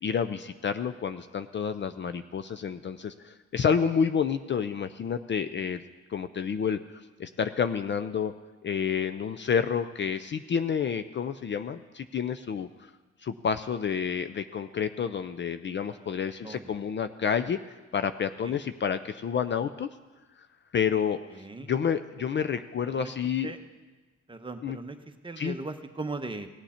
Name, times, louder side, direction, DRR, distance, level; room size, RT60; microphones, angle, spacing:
voice 1, 0.0-5.8 6.1-8.3 8.6-12.9 13.2-17.6 17.9-19.9 20.4-20.5 20.7-23.5 24.6-24.8 25.4-25.6, left 7 dB, 40° left, 10 dB, 0.5 m, -29 dB
voice 2, 21.3-21.7 22.8-23.1 23.4-23.6 24.3-25.0 25.2-26.5, right 3 dB, 15° right, 6 dB, 0.9 m, -38 dB
17.5 x 8.1 x 4.3 m, 1.2 s
cardioid pair, 90°, 30 cm